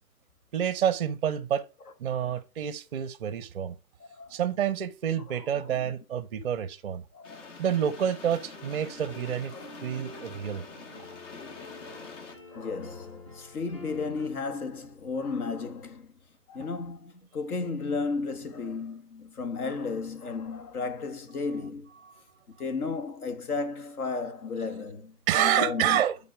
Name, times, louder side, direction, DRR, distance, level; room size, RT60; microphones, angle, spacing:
voice 1, 0.5-1.6 2.0-3.7 4.3-7.0 7.6-9.5 9.8-10.6 22.0-22.2 25.3-26.2, right 9 dB, 40° right, 0.5 m, -28 dB
voice 2, 2.1-2.4 4.1-4.4 5.3-5.5 5.7-5.9 7.1-7.5 9.5-9.7 12.5-16.1 16.5-21.9 22.6-26.0, left 4 dB, 65° left, 1.5 m, -34 dB
sound 1, 7.2-12.3, left 4 dB, 50° left, 1.5 m, -45 dB
sound 2, 8.5-14.3, left 2 dB, 20° left, 0.4 m, -48 dB
8.6 x 4.0 x 4.7 m
hypercardioid pair, 140°, 47 cm